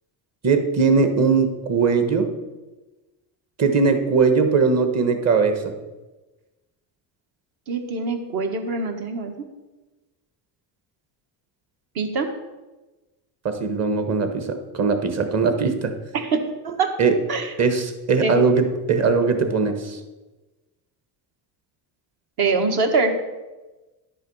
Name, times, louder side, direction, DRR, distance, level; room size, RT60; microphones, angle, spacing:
voice 1, 0.4-2.3 3.6-5.7 13.4-15.9 17.0-17.2 17.6-20.0, right 5 dB, 35° right, 7 dB, 1.3 m, -20 dB
voice 2, 7.7-9.5 11.9-12.3 16.1-16.3 16.6-16.9 17.3-17.5 18.2-18.4 22.4-23.2, right 3 dB, 55° right, 5 dB, 1.6 m, -24 dB
11.0 x 6.4 x 5.5 m, 1.1 s
cardioid pair, 120°, 45 cm